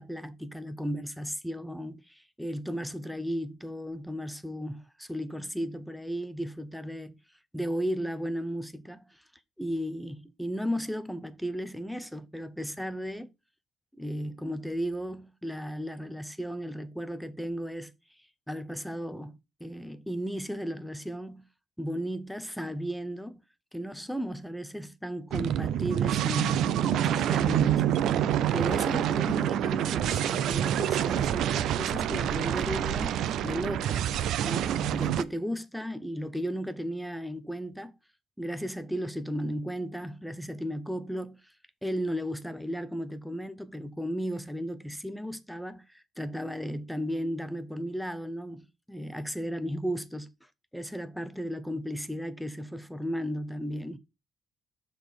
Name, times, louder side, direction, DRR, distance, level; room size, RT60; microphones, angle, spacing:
voice 1, 0.0-7.1 7.5-9.2 9.6-13.3 13.9-17.9 18.5-21.5 21.8-23.4 23.7-27.9 28.5-33.2 33.4-34.1 34.4-37.9 38.4-41.5 41.8-50.3 50.7-54.0, equal, ahead, 0.5 m, -35 dB
sound 1, 25.3-35.2, right 10 dB, 80° right, 0.5 m, -27 dB
7.0 x 4.0 x 6.5 m
cardioid pair, 180°, 0 cm